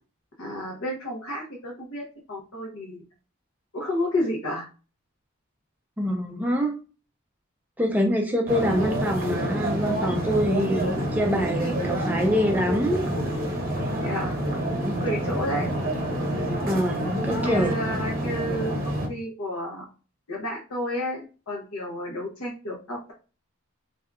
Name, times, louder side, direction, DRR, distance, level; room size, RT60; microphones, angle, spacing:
voice 1, 0.4-2.0 2.3-3.0 3.7-4.6 14.0-14.4 14.8-15.7 17.4-19.8 20.3-23.1, left 1 dB, 85° left, -3 dB, 0.8 m, -31 dB
voice 2, 6.0-6.7 7.8-13.1 14.8-14.9 16.6-17.7, equal, 10° right, 2 dB, 0.3 m, -25 dB
sound 1, 8.5-19.1, right 1 dB, 40° right, 0.8 m, -28 dB
2.7 x 2.2 x 3.4 m, 0.35 s
head